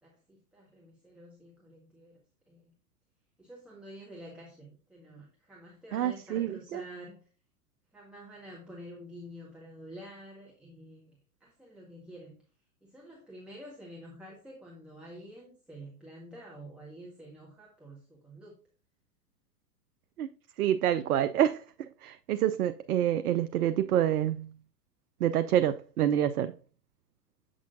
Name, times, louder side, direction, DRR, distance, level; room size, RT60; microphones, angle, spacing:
voice 1, 0.0-2.2 2.5-2.7 3.4-7.2 7.9-12.3 12.8-18.6, equal, ahead, 1.5 m, -49 dB
voice 2, 5.9-6.8 20.2-20.3 20.6-21.6 22.0-24.5 25.2-26.5, right 11 dB, 65° right, 0.5 m, -27 dB
8.1 x 6.2 x 2.6 m
figure-of-eight pair, 100°, 48 cm